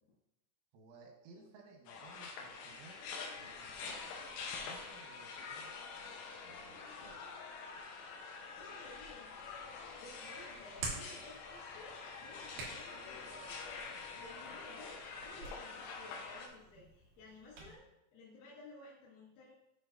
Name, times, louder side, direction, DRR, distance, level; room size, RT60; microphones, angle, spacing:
voice 1, 0.7-3.0 3.3-7.3, right 3 dB, 85° right, 1 dB, 3.5 m, -59 dB
sound 1, 1.9-16.5, left 4 dB, 85° left, 3.4 m, -46 dB
voice 2, 8.4-13.6 14.0-17.8 18.1-19.5, left 2 dB, 70° left, -10 dB, 3.7 m, -56 dB
Hands, 9.3-17.8, right 3 dB, 60° right, 3.3 m, -50 dB
9.4 x 6.1 x 2.6 m, 0.91 s
omnidirectional pair, 5.4 m